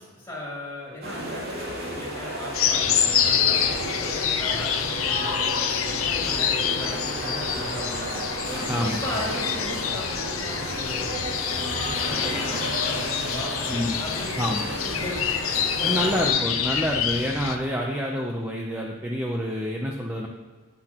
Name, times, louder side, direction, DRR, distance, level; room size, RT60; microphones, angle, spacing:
voice 1, 0.1-8.3 8.8-11.3 12.0-15.4 15.7-16.1, left 1 dB, 15° left, -5 dB, 3.3 m, -37 dB
sound 1, 1.0-16.3, right 1 dB, 45° right, 2.7 m, -32 dB
sound 2, 2.5-17.6, left 8 dB, 75° left, 0.7 m, -27 dB
voice 2, 8.7-9.2 13.7-14.0 14.4-14.7 15.8-20.3, equal, 10° right, -1 dB, 0.7 m, -27 dB
18.0 x 6.1 x 3.0 m, 1.4 s
head